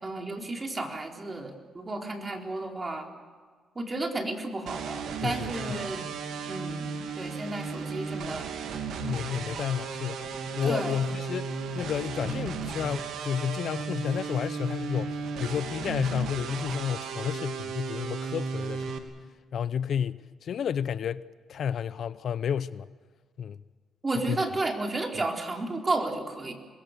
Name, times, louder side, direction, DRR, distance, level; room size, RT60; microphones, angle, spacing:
voice 1, 0.0-3.1 3.7-6.0 6.5-8.5 10.6-11.0 24.0-26.5, right 2 dB, 25° right, 2 dB, 4.2 m, -32 dB
sound 1, 4.7-19.0, right 5 dB, 75° right, 2.7 m, -35 dB
voice 2, 5.2-5.9 9.0-11.5 11.7-19.0 19.5-21.2 21.5-22.9 23.4-23.6 24.3-24.4, left 8 dB, 60° left, 16 dB, 0.7 m, -31 dB
26.5 x 22.0 x 6.7 m, 1.5 s
cardioid pair, 90°, 0 cm